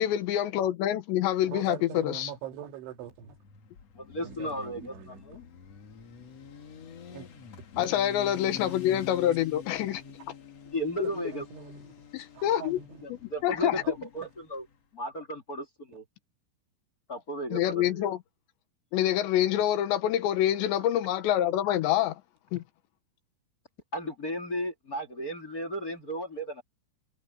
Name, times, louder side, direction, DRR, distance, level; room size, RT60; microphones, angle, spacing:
voice 1, 0.0-2.3 7.8-10.0 11.0-11.1 12.1-12.8 13.1-13.8 17.5-18.2 18.9-22.2 22.5-22.6, left 12 dB, 75° left, 3.4 m, -26 dB
voice 2, 1.5-3.4 4.2-5.3 7.1-7.3 8.4-9.1 11.0-11.9 12.3-13.0, right 8 dB, 85° right, 4.6 m, -43 dB
Motorcycle, 3.1-14.8, left 7 dB, 50° left, 2.1 m, -47 dB
voice 3, 3.9-5.4 10.7-11.4 13.0-14.6 14.9-16.0 17.1-18.1 23.9-26.6, equal, 25° left, 2.4 m, -35 dB
omnidirectional pair, 5.3 m